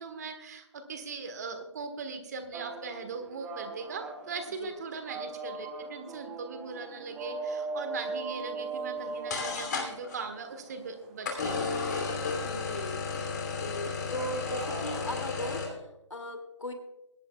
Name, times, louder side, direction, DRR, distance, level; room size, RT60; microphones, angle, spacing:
voice 1, 0.0-11.7, right 4 dB, 35° right, 6 dB, 1.4 m, -40 dB
sound 1, 2.5-15.7, right 3 dB, 5° right, 0.5 m, -41 dB
sound 2, 9.0-9.1 9.3-10.2 11.2-15.7, left 4 dB, 35° left, 2.7 m, -33 dB
voice 2, 12.4-13.0 13.5-16.7, left 1 dB, 75° left, 5 dB, 2.4 m, -38 dB
21.5 x 11.0 x 2.3 m, 0.89 s
figure-of-eight pair, 150°, 16 cm